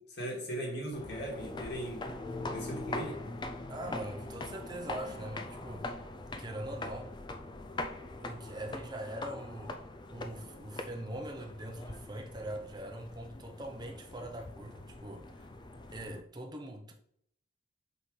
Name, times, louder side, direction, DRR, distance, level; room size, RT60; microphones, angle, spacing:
voice 1, 0.1-2.0 2.5-3.2, right 1 dB, 55° left, 2.2 m, -38 dB
sound 1, 0.9-16.2, left 2 dB, 25° left, 0.4 m, -42 dB
voice 2, 3.7-5.9 6.4-7.1 8.2-9.8 10.1-15.5 15.9-16.9, right 1 dB, 20° right, 0.7 m, -42 dB
5.8 x 5.5 x 3.3 m
head